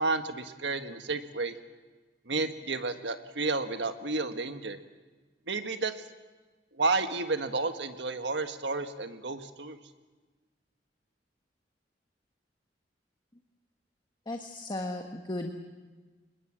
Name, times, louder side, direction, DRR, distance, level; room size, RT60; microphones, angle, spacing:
voice 1, 0.0-1.5 2.3-4.8 5.5-5.9 6.8-9.8, right 3 dB, 90° right, 8 dB, 1.6 m, -31 dB
voice 2, 14.3-15.5, left 1 dB, 25° left, 3 dB, 1.4 m, -35 dB
26.0 x 20.5 x 7.5 m, 1.3 s
head